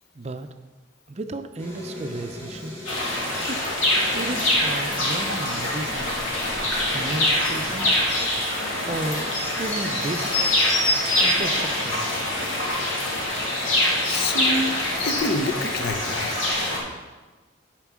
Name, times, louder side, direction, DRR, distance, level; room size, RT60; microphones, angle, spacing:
voice 1, 0.1-0.5 1.1-2.8 3.5-3.6 4.1-6.1 6.9-7.9 8.8-10.6 11.2-12.1 16.8-16.9, right 2 dB, 35° right, 8 dB, 0.5 m, -33 dB
sound 1, 1.6-16.6, equal, 15° left, 2.3 m, -42 dB
sound 2, 2.9-16.8, left 1 dB, 85° left, 2.5 m, -24 dB
voice 2, 14.1-14.8 15.0-16.3, left 2 dB, 50° left, 8 dB, 0.6 m, -27 dB
9.1 x 4.5 x 6.1 m, 1.2 s
head